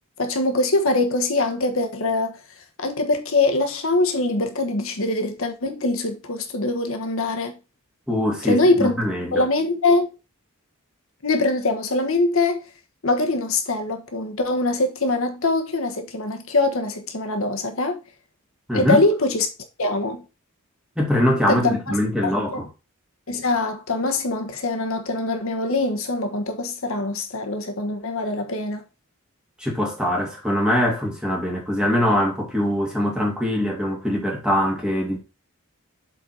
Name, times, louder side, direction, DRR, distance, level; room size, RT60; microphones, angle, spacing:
voice 1, 0.2-2.4 2.8-7.6 8.4-8.9 9.3-10.1 11.2-12.6 13.0-18.0 18.7-19.5 19.8-20.2 21.5-21.9 22.2-22.6 23.3-28.8, left 2 dB, 70° left, 1.2 m, -23 dB
voice 2, 8.1-9.5 18.7-19.0 21.0-22.7 29.6-35.2, equal, 5° right, 2.0 m, -22 dB
7.6 x 4.0 x 4.3 m
head